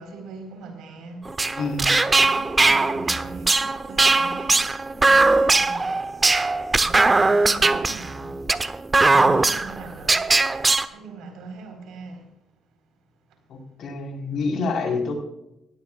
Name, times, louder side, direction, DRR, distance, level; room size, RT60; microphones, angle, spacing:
voice 1, 0.0-1.3 2.0-6.1 6.7-8.5 9.0-10.3 10.9-12.3, right 4 dB, 85° right, 4.4 m, -41 dB
sound 1, 1.3-10.9, right 3 dB, 25° right, 0.9 m, -20 dB
voice 2, 1.6-1.9 13.5-15.1, left 4 dB, 70° left, 4.5 m, -27 dB
18.5 x 17.0 x 2.5 m
cardioid pair, 90°, 0 cm